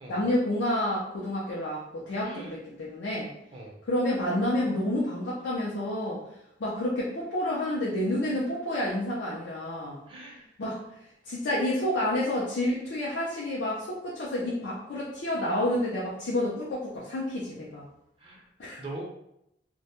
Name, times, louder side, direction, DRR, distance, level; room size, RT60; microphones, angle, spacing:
voice 1, 0.1-3.3 3.8-6.2 6.6-10.0 10.6-10.8 11.2-17.9 18.6-18.8, left 1 dB, 75° left, -5 dB, 0.5 m, -29 dB
voice 2, 2.2-2.8 3.5-3.8 10.1-10.5 18.2-18.4 18.8-19.0, right 2 dB, 30° right, -2 dB, 0.5 m, -42 dB
2.1 x 2.1 x 2.8 m, 0.81 s
head